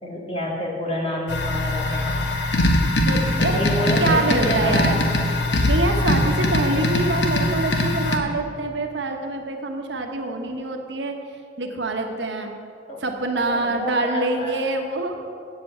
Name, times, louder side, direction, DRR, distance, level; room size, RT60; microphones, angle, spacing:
voice 1, 0.0-2.2 3.4-4.8 12.9-13.0 13.3-14.5, equal, 35° left, -2 dB, 1.9 m, -28 dB
sound 1, 1.3-8.2, left 1 dB, 80° left, 1.1 m, -21 dB
voice 2, 3.0-3.6 3.9-5.0 5.6-11.1 11.6-12.5 13.0-15.3, right 2 dB, 90° right, 3 dB, 1.1 m, -25 dB
8.1 x 7.6 x 7.9 m, 2.4 s
head